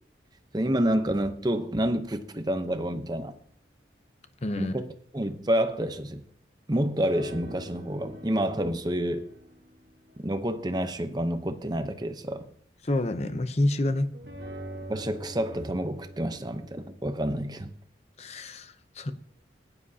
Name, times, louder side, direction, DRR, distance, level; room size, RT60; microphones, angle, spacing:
voice 1, 0.5-3.4 4.6-4.9 5.1-6.2 6.7-9.3 10.2-12.5 14.9-17.7, right 1 dB, 20° right, 0.8 m, -28 dB
voice 2, 4.4-4.8 12.8-14.1 18.2-19.1, left 1 dB, 35° left, 0.7 m, -28 dB
sound 1, 7.1-9.8 10.1-10.3 14.1-16.9, right 1 dB, 55° right, 1.4 m, -43 dB
16.0 x 9.9 x 2.8 m
head